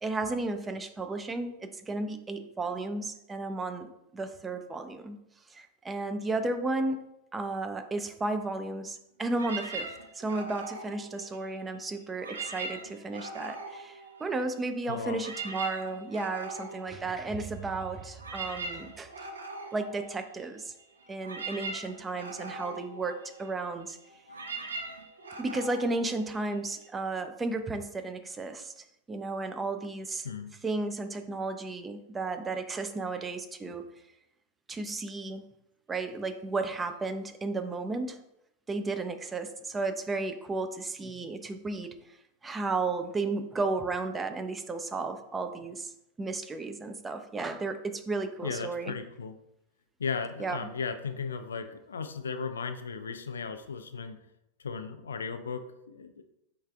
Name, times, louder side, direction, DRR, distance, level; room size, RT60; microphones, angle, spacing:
voice 1, 0.0-5.2 5.5-7.1 7.3-19.1 19.7-20.7 21.1-24.0 25.4-30.3 30.6-33.8 34.7-35.4 35.9-38.2 38.7-41.9 42.4-45.9 46.2-48.9 50.4-50.6, right 3 dB, 15° right, 7 dB, 0.4 m, -33 dB
sound 1, 9.3-11.7 12.1-14.6 14.9-26.9, right 3 dB, 75° right, 0.6 m, -41 dB
voice 2, 14.9-15.2 30.2-30.5 48.4-49.4 50.0-54.2 54.6-56.2, left 5 dB, 70° left, 8 dB, 0.4 m, -36 dB
4.6 x 3.2 x 3.4 m, 0.82 s
figure-of-eight pair, 90°, 0 cm